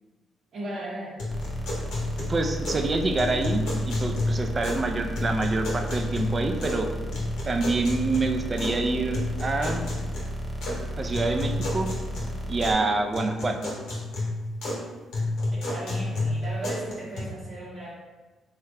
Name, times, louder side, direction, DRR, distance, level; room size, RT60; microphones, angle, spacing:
voice 1, 0.5-1.2 15.5-18.0, right 1 dB, 65° right, -8 dB, 0.8 m, -36 dB
sound 1, 1.2-2.9 3.2-4.9 5.2-6.8 7.1-8.8 9.1-10.8 11.1-12.8 13.1-14.8 15.1-17.2, left 2 dB, 75° left, 0.9 m, -31 dB
sound 2, 1.3-12.7, equal, 5° right, 0.6 m, -34 dB
voice 2, 2.3-6.9 7.5-9.8 11.0-11.9 12.5-13.7, right 3 dB, 40° right, 5 dB, 0.4 m, -26 dB
3.1 x 2.3 x 3.2 m, 1.2 s
supercardioid pair, 55°, 0 cm